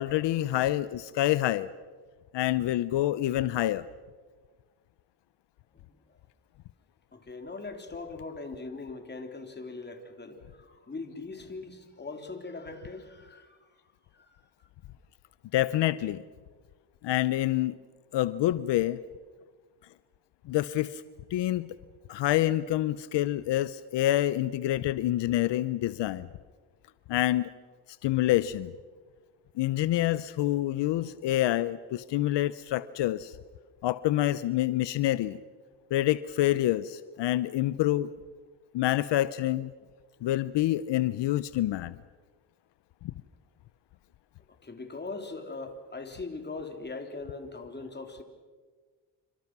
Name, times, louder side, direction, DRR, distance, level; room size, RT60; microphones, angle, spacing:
voice 1, 0.0-1.7 2.3-3.8 15.5-16.2 17.0-17.8 18.1-19.0 20.5-21.0 21.3-21.7 22.1-26.3 27.1-27.5 28.0-28.7 29.6-33.3 33.8-35.4 35.9-38.1 38.7-39.7 40.2-42.0, left 14 dB, 80° left, 15 dB, 0.8 m, -27 dB
voice 2, 7.1-13.7 14.1-14.3 44.6-48.2, left 3 dB, 25° left, 5 dB, 3.5 m, -40 dB
28.0 x 25.5 x 6.1 m, 1.5 s
cardioid pair, 115°, 42 cm